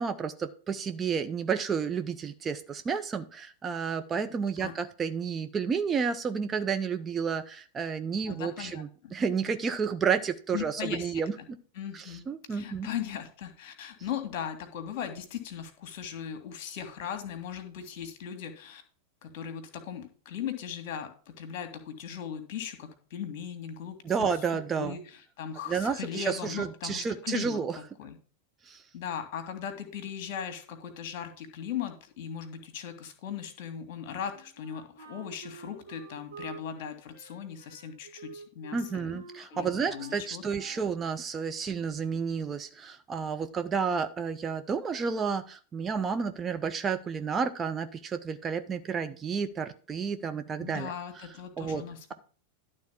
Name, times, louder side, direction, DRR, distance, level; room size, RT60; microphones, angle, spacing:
voice 1, 0.0-11.6 11.9-12.9 24.0-25.0 25.7-27.8 28.7-28.8 38.7-51.2 51.6-51.8, right 6 dB, 20° right, 8 dB, 0.6 m, -31 dB
voice 2, 8.3-9.1 10.5-11.5 11.8-12.2 12.5-18.8 19.2-24.3 24.8-28.2 28.9-39.1 39.4-40.4 50.6-52.1, left 8 dB, 45° left, 7 dB, 1.9 m, -38 dB
Wind instrument woodwind instrument, 34.2-41.0, right 4 dB, 80° right, 2.9 m, -49 dB
11.5 x 3.8 x 7.1 m, 0.40 s
figure-of-eight pair, 90°, 0 cm